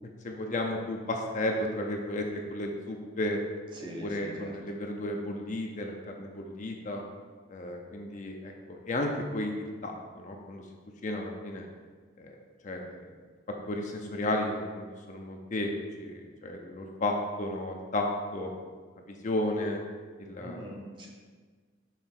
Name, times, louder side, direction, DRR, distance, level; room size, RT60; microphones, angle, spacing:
voice 1, 0.0-3.4 4.0-7.0 7.5-10.6 11.0-11.7 12.2-12.3 12.6-13.1 13.7-15.7 16.0-18.5 19.1-19.8 20.2-20.7, left 1 dB, 40° left, 2 dB, 0.5 m, -33 dB
voice 2, 3.7-4.5 20.4-21.1, equal, 25° right, -1 dB, 0.9 m, -42 dB
5.7 x 4.0 x 4.5 m, 1.5 s
head